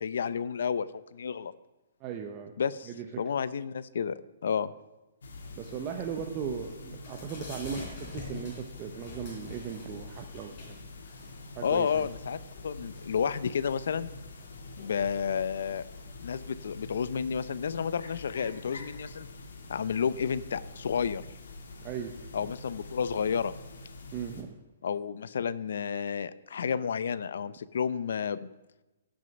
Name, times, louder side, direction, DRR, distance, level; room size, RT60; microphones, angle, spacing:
voice 1, 0.0-1.5 2.6-2.9 3.2-4.7 11.6-12.4 12.6-14.1 14.8-15.8 16.2-19.3 19.7-21.2 22.3-23.5 24.8-28.5, left 7 dB, 65° left, 17 dB, 0.5 m, -31 dB
voice 2, 2.0-2.5 2.9-3.2 5.6-10.8 11.5-12.1 21.8-22.1 24.1-24.5, right 7 dB, 20° right, 4 dB, 0.6 m, -37 dB
sound 1, 5.2-24.4, left 2 dB, 85° left, 2.0 m, -45 dB
sound 2, 6.6-18.5, left 3 dB, 30° left, 4.6 m, -49 dB
16.5 x 6.4 x 5.2 m, 1.0 s
hypercardioid pair, 175°, 0 cm